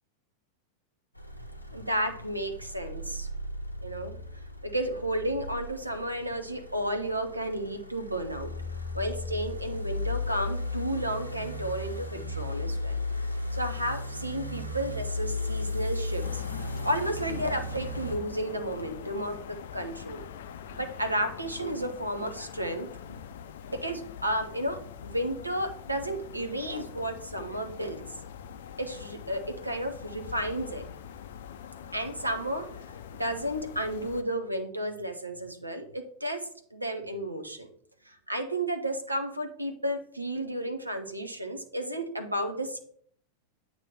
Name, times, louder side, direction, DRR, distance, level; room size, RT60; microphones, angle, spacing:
sound 1, 1.2-18.2, left 2 dB, 90° left, 0.8 m, -36 dB
voice 1, 1.7-3.3 3.8-4.1 4.6-8.5 8.9-13.0 13.5-20.2 20.7-23.2 23.7-28.0 28.8-30.8 31.8-32.7 33.1-37.7 38.1-42.8, right 1 dB, 85° right, 6 dB, 0.8 m, -32 dB
sound 2, 16.2-34.2, left 8 dB, 55° left, 0.5 m, -44 dB
8.9 x 3.0 x 5.5 m, 0.62 s
figure-of-eight pair, 90°, 0 cm